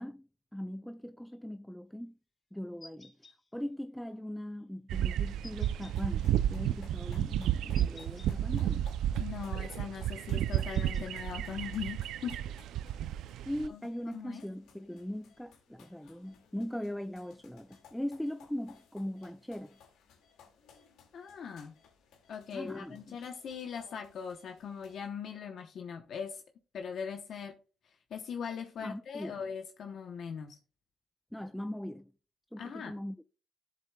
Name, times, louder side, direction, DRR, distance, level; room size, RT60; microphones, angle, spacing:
voice 1, 0.0-2.2 2.5-8.9 13.5-19.8 22.5-23.2 28.8-29.3 31.3-32.1 32.5-33.2, equal, 5° left, 0.3 m, -40 dB
sound 1, 2.8-3.3 5.4-5.9 7.7-8.3 10.5-11.1, left 2 dB, 25° left, 1.2 m, -52 dB
sound 2, 4.9-13.7, right 11 dB, 85° right, 0.3 m, -32 dB
sound 3, 5.9-25.1, left 6 dB, 85° left, 1.9 m, -61 dB
voice 2, 9.2-12.4 13.7-13.8 14.1-14.4 21.1-21.7 22.3-26.4 26.7-27.6 28.1-30.6 32.6-32.9, left 7 dB, 65° left, 0.8 m, -40 dB
11.0 x 7.5 x 2.2 m
cardioid pair, 90°, 0 cm